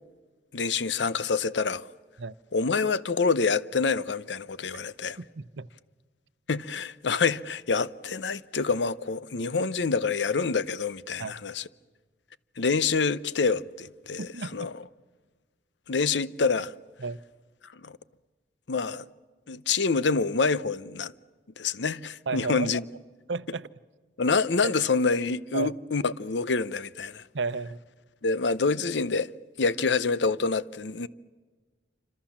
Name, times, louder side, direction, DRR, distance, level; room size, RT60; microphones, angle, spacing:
voice 1, 0.5-1.8 2.5-5.2 6.5-11.6 12.6-14.7 15.9-16.7 17.8-17.9 18.7-19.1 19.5-21.1 21.6-22.8 24.2-27.2 28.2-29.3 29.6-31.1, left 4 dB, 85° left, 0.8 m, -27 dB
voice 2, 5.2-5.7 11.2-11.4 14.2-14.7 17.0-17.2 22.3-22.7 23.3-23.7 24.6-24.8 25.5-25.7 27.3-27.8, right 4 dB, 90° right, 0.8 m, -33 dB
28.0 x 26.0 x 7.3 m
head